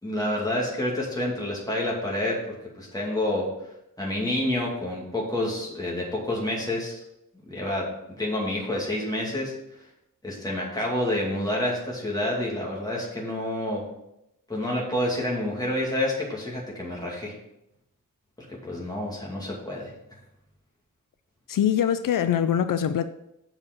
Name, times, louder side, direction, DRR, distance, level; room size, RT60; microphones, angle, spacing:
voice 1, 0.0-3.5 4.0-7.0 7.5-9.5 10.2-13.8 14.5-17.3 18.6-19.9, left 1 dB, 10° left, -4 dB, 2.2 m, -28 dB
voice 2, 21.5-23.1, left 9 dB, 80° left, 11 dB, 0.5 m, -23 dB
7.0 x 4.8 x 6.5 m, 0.84 s
wide cardioid pair, 175°, 33 cm